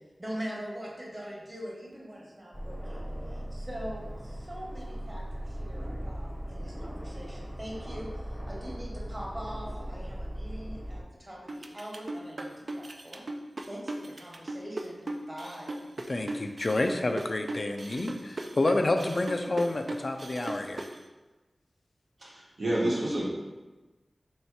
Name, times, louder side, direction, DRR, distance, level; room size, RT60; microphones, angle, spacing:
voice 1, 0.2-13.2 13.7-15.7 16.3-16.4, equal, 30° right, -4 dB, 1.1 m, -42 dB
Aircraft, 2.5-11.0, equal, 10° right, 0.5 m, -38 dB
sound 1, 11.5-21.0, right 2 dB, 60° right, 0.3 m, -38 dB
voice 2, 16.1-20.9, left 2 dB, 55° left, 5 dB, 0.3 m, -29 dB
voice 3, 22.2-23.3, right 1 dB, 80° right, -6 dB, 1.1 m, -29 dB
3.2 x 2.8 x 4.5 m, 1.2 s
wide cardioid pair, 65°, 0 cm